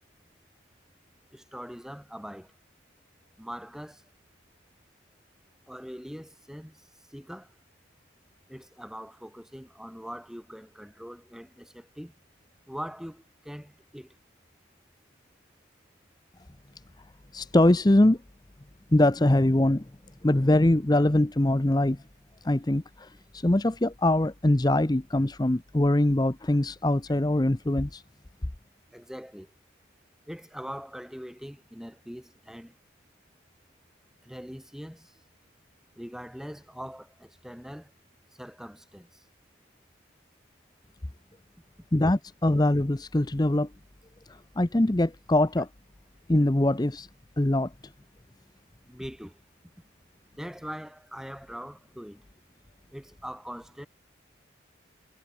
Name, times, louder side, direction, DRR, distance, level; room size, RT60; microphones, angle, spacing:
voice 1, 1.3-2.5 3.4-4.0 5.7-7.5 8.5-12.1 12.7-14.1 28.9-29.5 30.3-32.7 34.2-35.2 35.9-37.9 38.4-39.2 48.9-49.4 50.3-52.2 52.9-53.9, equal, 5° right, 5.1 m, -42 dB
voice 2, 17.3-18.2 18.9-19.9 20.2-22.0 22.4-28.0 41.9-43.7 44.6-45.7 46.3-47.1 47.4-47.7, left 1 dB, 20° left, 0.6 m, -23 dB
head